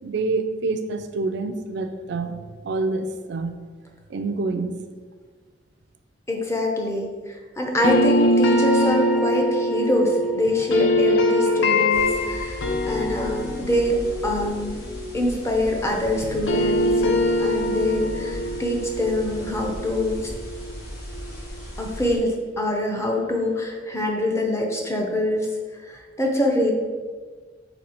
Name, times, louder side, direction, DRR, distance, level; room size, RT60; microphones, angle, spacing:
voice 1, 0.0-2.4 2.6-3.6 4.1-4.7, right 3 dB, 65° right, 8 dB, 0.4 m, -27 dB
voice 2, 6.3-7.1 7.6-12.6 12.9-14.8 15.1-20.3 21.8-25.5 25.9-26.7, left 1 dB, 15° left, 0 dB, 0.6 m, -24 dB
sound 1, 7.8-15.9 16.2-21.2, left 1 dB, 85° left, 0.5 m, -23 dB
sound 2, 11.9-22.2, equal, 55° left, 1.2 m, -37 dB
4.3 x 2.8 x 4.2 m, 1.5 s
head